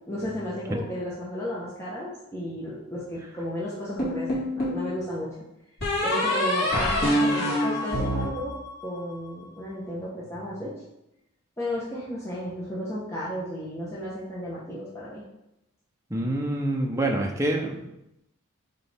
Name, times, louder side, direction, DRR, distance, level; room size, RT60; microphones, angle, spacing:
voice 1, 0.1-5.3 6.0-8.5 8.8-10.7 11.6-15.2, equal, 15° left, -8 dB, 1.3 m, -33 dB
sound 1, 4.0-4.8 5.8-9.1, left 1 dB, 50° left, 2.4 m, -26 dB
voice 2, 16.1-17.8, right 1 dB, 15° right, 0 dB, 0.8 m, -26 dB
8.4 x 3.8 x 3.6 m, 0.84 s
head